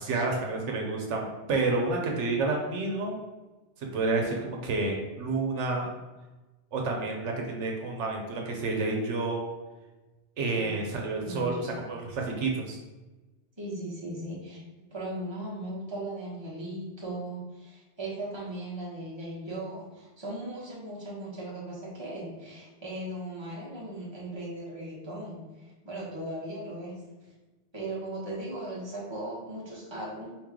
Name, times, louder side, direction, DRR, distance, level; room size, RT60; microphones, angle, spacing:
voice 1, 0.0-3.1 3.8-5.9 6.7-9.5 10.4-12.8, right 3 dB, 80° right, 0 dB, 1.0 m, -29 dB
voice 2, 11.2-11.6 13.6-27.0 27.7-30.4, right 1 dB, 25° right, -6 dB, 1.3 m, -38 dB
4.4 x 3.1 x 3.6 m, 1.1 s
omnidirectional pair, 1.2 m